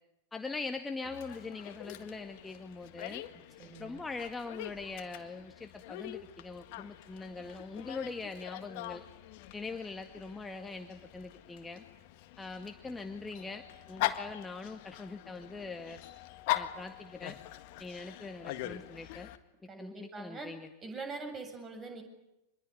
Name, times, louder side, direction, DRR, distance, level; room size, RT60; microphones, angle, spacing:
voice 1, 0.3-3.2 3.8-9.0 9.5-11.8 12.4-16.0 16.5-17.4 17.8-19.3 19.6-20.7, left 3 dB, 10° left, 5 dB, 1.9 m, -42 dB
Dog, 1.0-19.4, left 15 dB, 50° left, 1.7 m, -42 dB
voice 2, 3.6-4.0 19.7-20.5 20.8-22.0, right 3 dB, 20° right, 6 dB, 7.8 m, -43 dB
26.5 x 22.0 x 9.8 m, 0.92 s
figure-of-eight pair, 90°, 0 cm